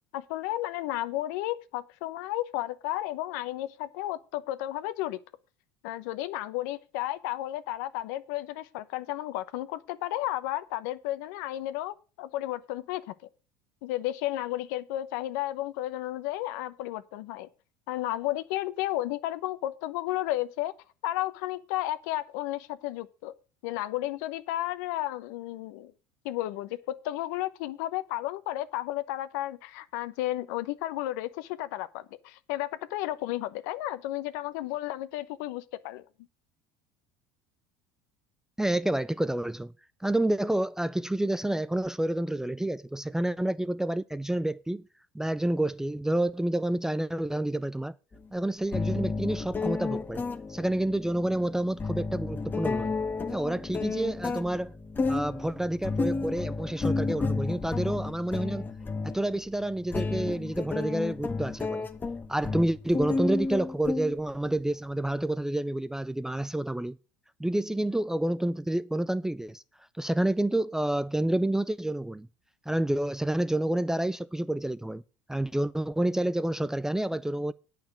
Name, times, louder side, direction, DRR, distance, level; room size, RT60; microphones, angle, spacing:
voice 1, 0.1-5.2 5.8-13.1 13.8-17.5 17.9-20.7 21.0-23.3 23.6-25.9 26.2-36.0, left 15 dB, 80° left, 0.9 m, -33 dB
voice 2, 38.6-39.7 40.0-44.9 45.1-47.9 48.3-50.2 50.5-53.0 53.3-54.7 55.1-58.7 59.0-61.9 62.3-67.0 67.4-69.6 70.0-72.3 72.7-75.0 75.3-77.5, right 1 dB, 5° right, 0.4 m, -29 dB
sound 1, 48.1-48.2 48.7-64.6, left 3 dB, 20° left, 0.9 m, -32 dB
8.9 x 5.8 x 7.3 m
supercardioid pair, 110°, 10 cm